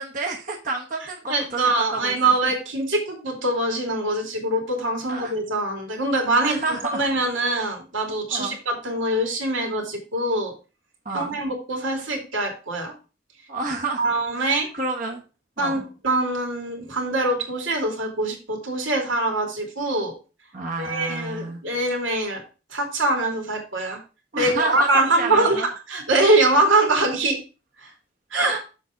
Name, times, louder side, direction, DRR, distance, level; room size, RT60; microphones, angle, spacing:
voice 1, 0.0-2.1 5.1-5.3 6.4-7.0 8.3-8.6 11.0-11.4 13.5-14.1 14.4-15.2 15.6-15.8 20.5-21.6 24.3-25.6 28.4-28.6, right 3 dB, 45° right, -1 dB, 1.2 m, -30 dB
voice 2, 1.3-10.5 11.1-12.9 14.0-14.7 15.6-20.1 20.8-22.4 22.7-24.0 24.3-27.4 27.8-27.9 28.3-28.6, right 2 dB, 85° right, 1 dB, 3.0 m, -23 dB
7.2 x 5.7 x 5.1 m, 0.33 s
head